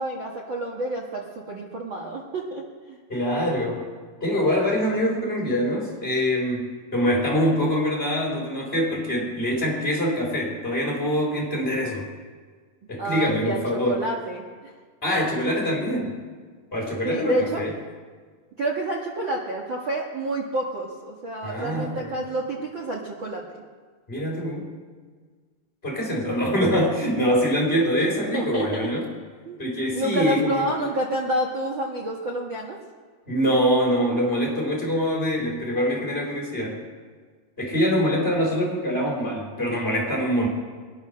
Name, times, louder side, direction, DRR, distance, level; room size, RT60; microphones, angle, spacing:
voice 1, 0.0-3.0 13.0-14.7 17.0-17.6 18.6-23.6 28.0-28.1 28.3-28.8 29.4-29.6 29.9-32.8, right 1 dB, 50° right, -2 dB, 1.4 m, -29 dB
voice 2, 3.1-3.9 4.2-12.1 12.9-14.1 15.0-16.2 16.7-17.7 21.4-22.1 24.1-24.7 25.8-29.1 29.6-30.7 33.3-36.8 37.6-40.5, equal, 15° left, -3 dB, 4.3 m, -24 dB
21.5 x 10.5 x 6.3 m, 1.6 s
omnidirectional pair, 4.3 m